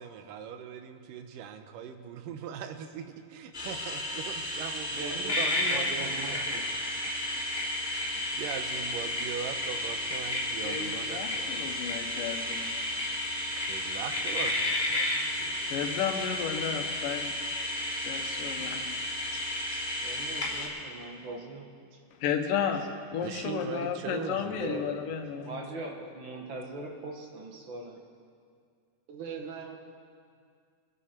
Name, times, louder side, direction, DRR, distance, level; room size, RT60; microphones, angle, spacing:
voice 1, 0.0-7.0 7.3-11.8 13.6-15.8 16.2-16.3 18.6-18.9 23.2-24.6, right 8 dB, 85° right, 8 dB, 2.4 m, -41 dB
sound 1, 3.5-20.7, left 1 dB, 15° left, 3.4 m, -32 dB
voice 2, 4.9-6.6 20.0-21.7 25.4-28.0, right 2 dB, 50° right, 1 dB, 1.6 m, -41 dB
voice 3, 10.6-12.7 15.7-17.3 18.1-18.9 22.2-25.5, left 7 dB, 85° left, 5 dB, 2.7 m, -33 dB
voice 4, 29.1-29.8, right 5 dB, 70° right, 1 dB, 2.9 m, -39 dB
24.0 x 10.0 x 4.4 m, 2.2 s
omnidirectional pair, 3.7 m